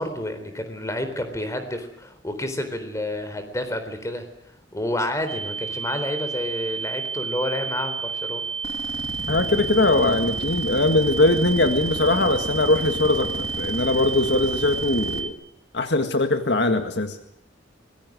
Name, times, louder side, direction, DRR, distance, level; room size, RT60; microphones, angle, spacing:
voice 1, 0.0-4.2 4.7-8.4, left 1 dB, 15° left, 8 dB, 4.0 m, -29 dB
sound 1, 5.3-15.3, right 6 dB, 90° right, 2.2 m, -31 dB
vibration machine idle, 8.6-15.2, left 1 dB, 30° left, 2.6 m, -34 dB
voice 2, 9.3-15.3 15.7-17.2, left 2 dB, 65° left, 7 dB, 1.9 m, -21 dB
26.0 x 21.0 x 6.3 m, 0.75 s
head